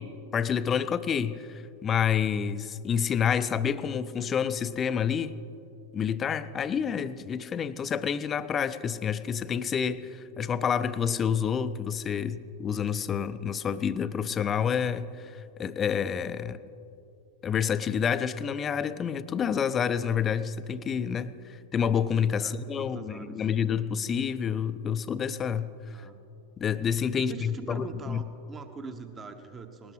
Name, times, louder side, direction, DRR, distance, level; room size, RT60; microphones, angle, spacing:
voice 1, 0.0-5.4 5.9-16.6 17.4-25.7 26.6-28.2, left 7 dB, 25° left, 13 dB, 0.5 m, -28 dB
voice 2, 22.4-23.5 25.9-26.2 27.1-29.9, right 4 dB, 20° right, 7 dB, 0.9 m, -43 dB
20.0 x 19.0 x 3.2 m, 2.8 s
figure-of-eight pair, 90°, 0 cm